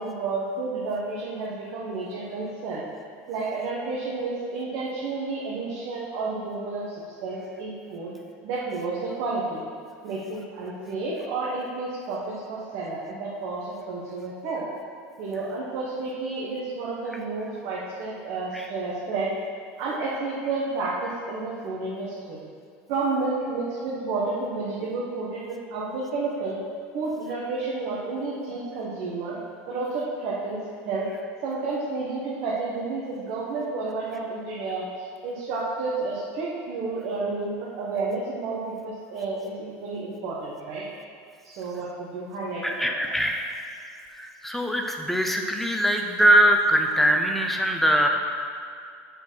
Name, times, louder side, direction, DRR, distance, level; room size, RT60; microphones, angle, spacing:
voice 1, 0.0-2.8 3.3-6.8 7.2-8.1 8.4-9.6 10.0-14.6 15.2-19.3 19.8-22.4 22.9-26.6 26.9-29.4 29.7-31.0 31.4-34.8 35.2-40.8 41.4-42.9, right 3 dB, 65° right, -6 dB, 1.3 m, -31 dB
voice 2, 42.6-43.6 44.1-48.1, right 1 dB, 5° left, 2 dB, 0.7 m, -22 dB
7.8 x 4.3 x 5.6 m, 2.3 s
supercardioid pair, 120°, 6 cm